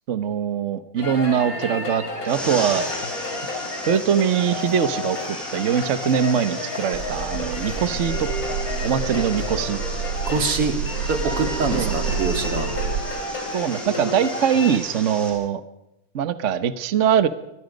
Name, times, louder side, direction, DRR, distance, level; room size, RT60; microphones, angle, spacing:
voice 1, 0.1-2.9 3.9-8.3 8.8-9.8 11.7-11.9 13.5-15.6 16.1-17.3, right 8 dB, 45° right, 11 dB, 1.0 m, -22 dB
sound 1, 1.0-14.8, left 2 dB, 40° left, 3.8 m, -31 dB
sound 2, 2.3-15.3, equal, ahead, 7.8 m, -36 dB
sound 3, 6.9-13.0, right 6 dB, 70° right, 2.9 m, -29 dB
voice 2, 10.3-10.8 11.1-12.7, right 4 dB, 85° right, 5 dB, 3.4 m, -24 dB
29.5 x 23.0 x 5.3 m, 0.89 s
omnidirectional pair, 2.4 m